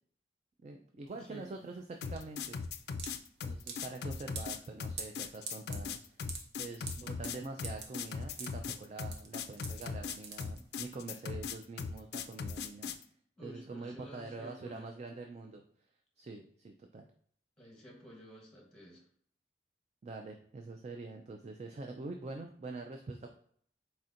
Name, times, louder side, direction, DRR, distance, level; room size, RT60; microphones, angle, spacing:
voice 1, 0.6-2.6 3.4-6.0 6.6-12.9 13.4-15.6 16.2-17.1 20.0-23.3, right 3 dB, 40° right, 3 dB, 0.3 m, -45 dB
sound 1, 1.1-11.0, right 4 dB, 70° right, 0.8 m, -47 dB
voice 2, 1.2-1.5 13.4-14.9 17.6-19.0, equal, 5° left, -1 dB, 1.0 m, -51 dB
sound 2, 2.0-13.0, left 5 dB, 65° left, 0.3 m, -39 dB
4.2 x 4.1 x 2.5 m, 0.62 s
head